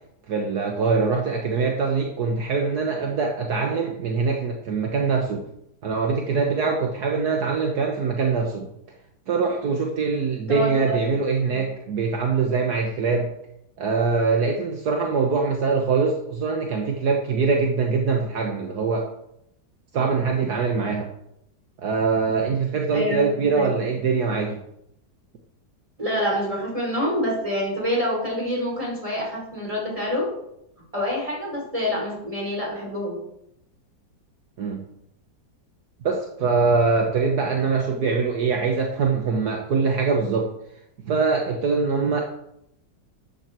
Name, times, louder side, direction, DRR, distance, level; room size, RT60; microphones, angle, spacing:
voice 1, 0.3-5.5 5.8-8.7 9.3-13.3 13.8-19.1 19.9-21.1 21.8-24.6 34.6-34.9 36.0-40.5 41.1-42.2, right 4 dB, 65° right, 1 dB, 1.7 m, -23 dB
voice 2, 10.5-11.2 11.5-11.7 22.9-23.7 26.0-30.3 30.9-33.2, left 1 dB, 20° right, -3 dB, 5.0 m, -27 dB
12.5 x 9.0 x 4.5 m, 0.78 s
omnidirectional pair, 1.8 m